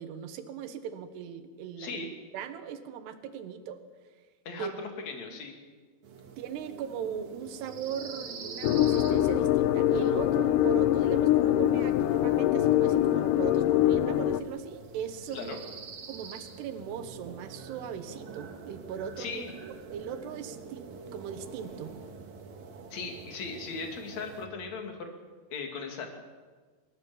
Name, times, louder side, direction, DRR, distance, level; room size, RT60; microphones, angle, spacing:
voice 1, 0.0-2.1 2.3-3.8 4.6-4.7 6.4-15.6 16.1-19.5 19.9-21.9, right 7 dB, 80° right, 9 dB, 3.3 m, -39 dB
voice 2, 1.8-2.1 4.5-5.6 15.3-15.6 19.2-19.5 22.9-25.2 25.5-26.1, left 4 dB, 45° left, 3 dB, 3.6 m, -38 dB
sound 1, 6.0-24.5, right 5 dB, 50° right, 2.7 m, -46 dB
sound 2, 8.6-14.4, left 12 dB, 85° left, 1.9 m, -24 dB
28.0 x 15.0 x 7.1 m, 1.4 s
omnidirectional pair, 4.7 m